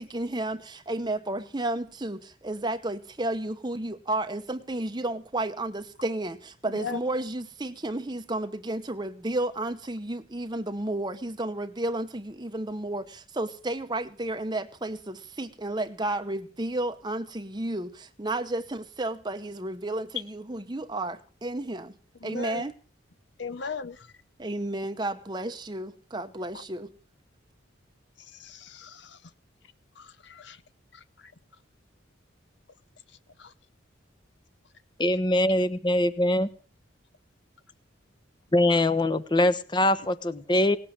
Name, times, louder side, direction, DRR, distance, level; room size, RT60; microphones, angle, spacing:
voice 1, 0.0-21.9 22.2-22.7 24.4-26.9, right 2 dB, 20° right, 0.9 m, -32 dB
voice 2, 22.2-22.6 23.4-24.0 28.4-29.2 30.0-30.6 33.4-33.5, left 5 dB, 65° left, 0.9 m, -37 dB
voice 3, 35.0-36.5 38.5-40.8, left 1 dB, 25° left, 1.1 m, -23 dB
18.5 x 7.8 x 8.7 m
head